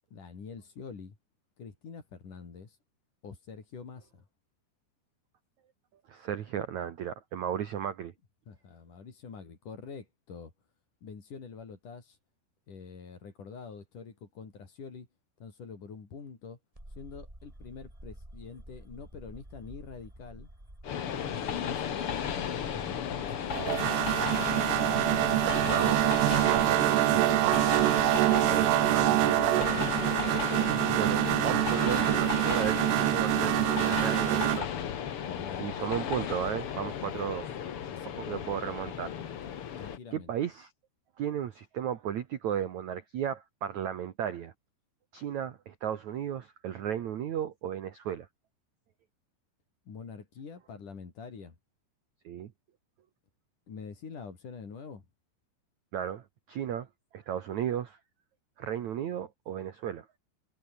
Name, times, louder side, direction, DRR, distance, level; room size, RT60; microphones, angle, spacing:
voice 1, 0.1-1.2 1.6-2.8 3.2-4.3 8.5-10.5 11.0-12.2 12.7-15.1 15.4-16.6 17.0-20.5 21.2-24.2 28.4-28.9 35.2-35.8 37.9-38.4 39.8-40.3 49.9-51.6 53.7-55.1, left 5 dB, 45° left, 5.3 m, -46 dB
voice 2, 6.1-8.1 25.6-26.0 26.3-27.5 28.5-29.8 30.9-34.7 35.6-37.5 38.0-39.2 39.8-40.7 41.2-44.5 45.1-48.3 52.2-52.5 55.9-56.9 57.1-58.0 58.6-60.1, right 9 dB, 60° right, 2.0 m, -35 dB
sound 1, 16.8-26.8, right 1 dB, 5° right, 6.8 m, -49 dB
Train, 20.8-40.0, left 9 dB, 90° left, 1.2 m, -34 dB
sound 2, 23.5-34.6, right 24 dB, 85° right, 2.3 m, -26 dB
omnidirectional pair, 5.2 m